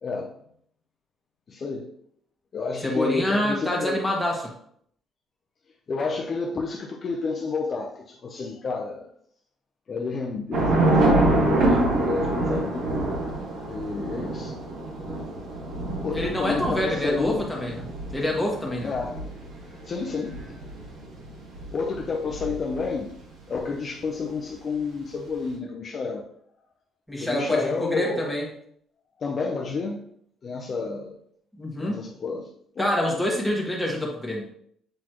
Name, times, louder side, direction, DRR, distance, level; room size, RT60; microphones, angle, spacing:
voice 1, 0.0-0.3 1.5-1.9 2.5-4.0 5.9-9.1 9.9-12.9 13.6-14.6 15.3-15.4 16.0-17.4 18.8-19.2 19.9-20.3 21.7-23.1 23.5-26.3 27.2-28.3 29.2-30.0 30.4-31.2 31.8-32.5 32.8-32.9, left 4 dB, 35° left, 0 dB, 0.6 m, -30 dB
voice 2, 2.8-4.5 16.1-17.8 18.1-18.9 27.1-28.4 31.6-32.0 32.8-34.5, left 1 dB, ahead, -3 dB, 1.4 m, -26 dB
Thunder / Rain, 10.5-23.0, right 2 dB, 75° right, 1.7 m, -26 dB
7.7 x 4.1 x 3.0 m, 0.66 s
cardioid pair, 155°, 0 cm